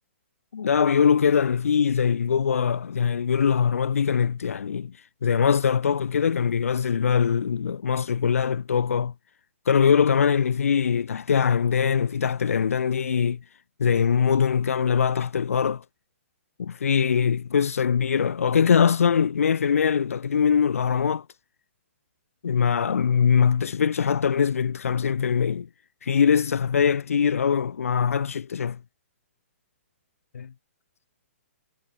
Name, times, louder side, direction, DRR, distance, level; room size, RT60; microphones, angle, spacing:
voice 1, 0.5-4.9 5.2-9.1 9.7-13.4 13.8-15.8 16.6-21.2 22.4-25.7 26.0-28.8 30.3-30.5, left 7 dB, 90° left, 1.9 m, -22 dB
hypercardioid pair, 175°, 7 cm